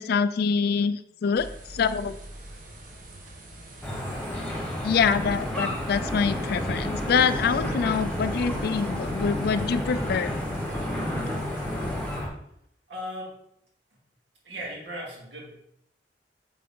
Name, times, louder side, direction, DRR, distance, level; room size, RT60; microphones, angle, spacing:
voice 1, 0.0-1.5 1.7-2.2 4.8-10.3, left 6 dB, 60° left, 13 dB, 0.3 m, -25 dB
sound 1, 1.3-12.2, right 1 dB, 50° right, 1.2 m, -43 dB
sound 2, 3.8-12.3, left 1 dB, 5° left, 1.2 m, -30 dB
voice 2, 12.9-13.4 14.4-15.5, equal, 75° right, -3 dB, 2.2 m, -37 dB
8.6 x 3.4 x 3.7 m, 0.74 s
head